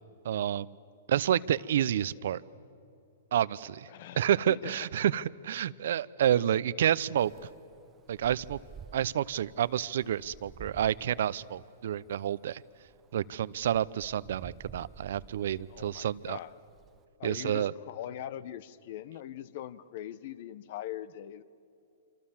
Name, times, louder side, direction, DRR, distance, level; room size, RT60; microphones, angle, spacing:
voice 1, 0.2-0.8 1.1-2.4 3.3-3.9 4.2-7.3 8.1-8.6 8.9-12.6 13.1-16.4 17.2-17.7, right 10 dB, 70° right, 19 dB, 0.6 m, -29 dB
voice 2, 3.9-4.7 5.7-5.9 6.3-6.4 15.7-16.6 17.2-21.4, left 12 dB, 55° left, 18 dB, 0.9 m, -42 dB
Wind, 7.2-17.0, right 7 dB, 20° right, 1.0 m, -52 dB
27.0 x 25.5 x 7.3 m, 2.5 s
hypercardioid pair, 140°, 0 cm